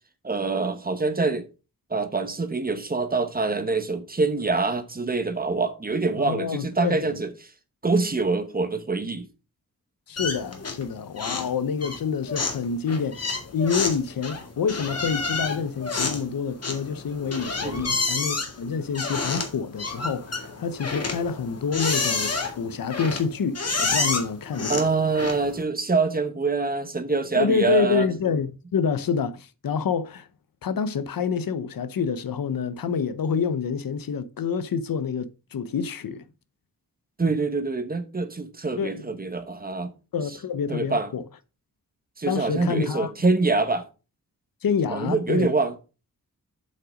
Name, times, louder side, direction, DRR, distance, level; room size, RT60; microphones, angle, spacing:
voice 1, 0.2-1.4 1.9-7.3 7.8-9.3 17.6-17.9 24.7-28.1 37.2-39.9 40.7-41.1 42.2-43.8 44.9-45.7, right 3 dB, 25° right, 1.1 m, -25 dB
voice 2, 6.2-7.1 10.1-24.8 27.3-30.3 30.6-36.2 38.8-39.0 40.1-41.2 42.2-43.1 44.6-45.5, left 6 dB, 75° left, 0.8 m, -27 dB
sound 1, 10.2-10.9 11.2-11.5 11.8-25.6, left 3 dB, 45° left, 1.9 m, -29 dB
7.7 x 5.7 x 5.1 m
wide cardioid pair, 160°, 34 cm